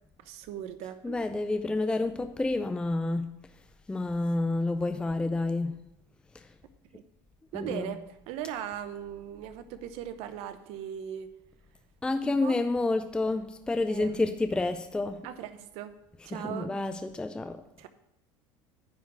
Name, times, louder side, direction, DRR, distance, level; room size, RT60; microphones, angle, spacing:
voice 1, 0.2-1.3 6.9-7.0 7.5-11.3 12.2-12.6 13.9-14.4 15.2-15.9 16.2-16.8 17.8-17.9, right 10 dB, 65° right, 0.8 m, -39 dB
voice 2, 1.0-3.3 3.9-5.8 6.3-6.5 7.5-7.9 12.0-15.3 16.3-17.6, left 2 dB, 10° left, 0.4 m, -29 dB
9.9 x 3.7 x 7.3 m
supercardioid pair, 115°, 11 cm